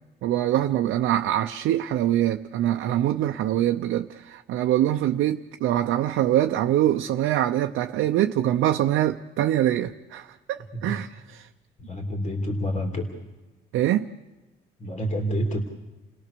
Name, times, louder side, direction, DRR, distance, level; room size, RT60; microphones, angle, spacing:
voice 1, 0.2-11.5 13.7-14.1, right 12 dB, 85° right, 0.7 m, -24 dB
voice 2, 11.8-13.1 14.8-15.6, equal, 40° left, 3.1 m, -28 dB
29.5 x 17.5 x 6.9 m
cardioid pair, 90°, 20 cm